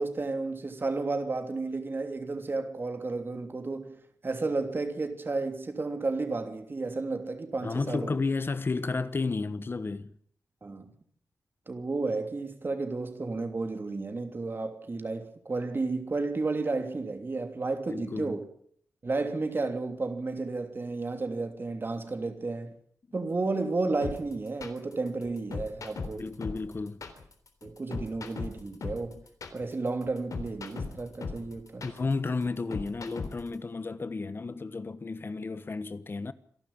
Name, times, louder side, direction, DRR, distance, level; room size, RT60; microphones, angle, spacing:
voice 1, 0.0-8.2 10.6-10.9 11.7-18.4 19.0-22.7 23.1-26.2 27.6-29.2 29.5-31.9, right 3 dB, 35° right, 3.1 m, -32 dB
voice 2, 7.6-10.1 17.9-18.4 26.2-27.0 31.8-36.3, left 3 dB, 40° left, 1.2 m, -32 dB
sound 1, 24.0-33.5, left 4 dB, 65° left, 3.6 m, -37 dB
26.5 x 12.0 x 8.7 m
wide cardioid pair, 110°, 6 cm